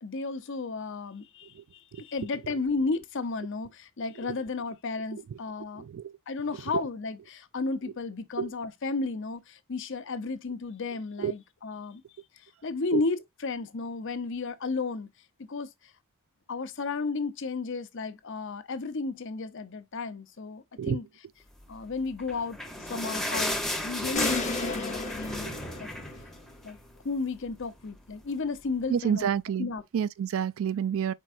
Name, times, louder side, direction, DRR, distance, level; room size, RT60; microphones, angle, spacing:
voice 1, 0.0-5.8 6.3-12.0 12.3-15.1 15.4-15.9 16.5-21.2 21.7-25.5 25.8-25.9 26.6-26.8 27.0-29.3 29.6-29.8, left 3 dB, 60° left, 0.7 m, -33 dB
sound 1, 22.1-26.9 27.2-27.3 27.6-27.8 28.5-28.6, left 1 dB, ahead, 0.7 m, -34 dB
sound 2, 24.2-26.5, left 3 dB, 35° left, 1.0 m, -34 dB
voice 2, 28.9-29.7 29.9-31.1, right 8 dB, 65° right, 0.3 m, -28 dB
4.5 x 4.5 x 2.4 m
head